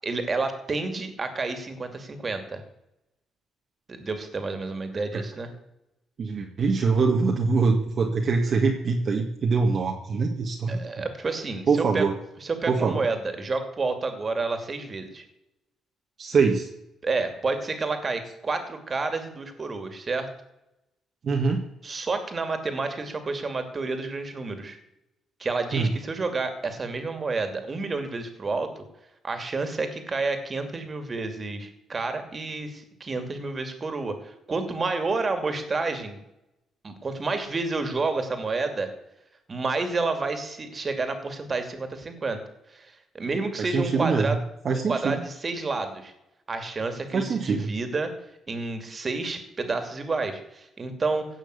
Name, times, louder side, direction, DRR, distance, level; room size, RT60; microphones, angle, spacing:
voice 1, 0.0-2.6 3.9-5.5 10.7-12.1 12.4-15.2 17.0-20.3 21.8-24.8 25.4-28.8 29.2-36.2 36.8-38.9 39.5-42.4 42.7-44.4 44.7-46.1 46.5-48.1 48.5-51.3, right 3 dB, 35° right, 7 dB, 2.7 m, -30 dB
voice 2, 6.2-11.0 11.7-12.2 12.7-13.1 16.2-16.7 21.2-21.7 25.7-25.9 43.6-44.3 44.6-45.2 47.1-47.7, right 4 dB, 50° right, 1 dB, 1.8 m, -24 dB
16.5 x 6.3 x 8.3 m, 0.87 s
cardioid pair, 90°, 0 cm